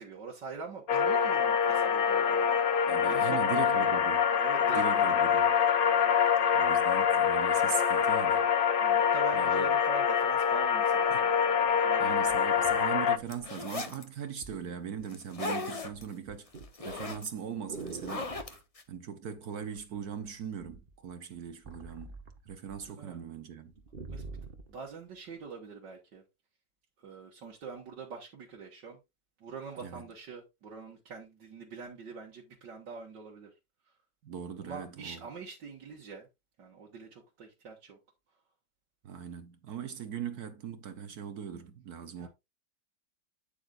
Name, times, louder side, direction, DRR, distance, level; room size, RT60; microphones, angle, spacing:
voice 1, 0.0-4.0 4.4-4.8 5.1-5.3 8.8-12.3 22.9-23.2 24.1-24.4 24.7-26.2 27.0-29.0 29.4-33.5 34.6-36.3 36.6-38.0 42.2-42.3, right 4 dB, 90° right, 2.3 m, -44 dB
sound 1, 0.9-13.2, left 7 dB, 70° left, 0.5 m, -25 dB
voice 2, 2.9-4.2 4.7-5.5 6.5-8.5 9.3-9.7 11.1-11.2 12.0-16.5 16.8-18.3 18.9-22.2 22.5-23.7 29.8-30.0 34.2-35.3 39.0-42.3, right 7 dB, 65° right, 1.4 m, -39 dB
sound 2, 11.6-11.7 12.3-13.8 14.4-14.6 15.0-15.5 15.8-18.6 19.7-20.3 20.6-22.9 23.2-23.3 23.6-24.7 25.4-25.5, right 3 dB, 35° right, 1.3 m, -46 dB
sound 3, 13.3-14.0 15.1-16.0 16.5-17.3 17.8-18.8, left 3 dB, 30° left, 0.7 m, -37 dB
9.0 x 8.3 x 2.5 m
omnidirectional pair, 1.9 m